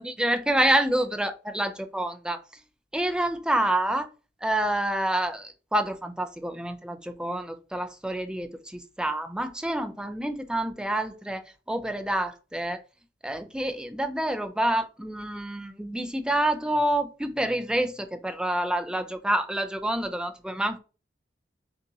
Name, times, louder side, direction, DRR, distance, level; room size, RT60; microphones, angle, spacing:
voice 1, 0.0-2.4 2.9-4.1 4.4-12.8 13.2-20.8, right 1 dB, 5° right, 0.4 m, -28 dB
6.7 x 2.5 x 2.6 m
head